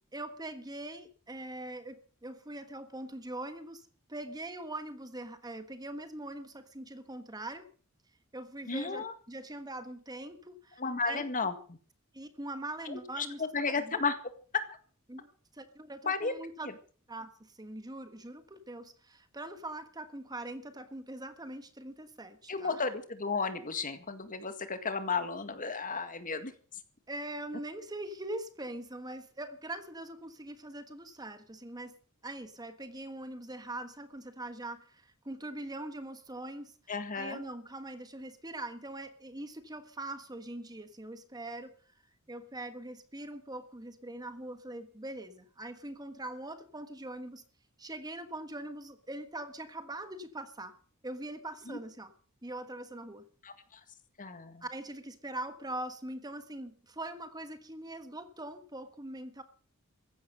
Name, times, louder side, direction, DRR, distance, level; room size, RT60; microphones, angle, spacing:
voice 1, 0.1-7.7 8.3-10.8 11.0-11.2 12.1-14.0 15.1-15.3 15.5-16.7 17.1-22.8 27.1-32.0 32.2-36.7 37.1-41.7 42.3-47.4 47.8-50.7 51.0-52.1 52.4-53.2 54.6-59.4, right 1 dB, 20° right, 10 dB, 1.4 m, -42 dB
voice 2, 8.7-9.1 10.8-11.6 12.9-14.2 14.5-14.6 16.1-16.3 16.6-16.7 22.5-26.5 36.9-37.4 51.7-51.8 53.4-53.8 54.2-54.6, left 4 dB, 40° left, 10 dB, 1.9 m, -33 dB
15.5 x 12.0 x 6.6 m, 0.42 s
head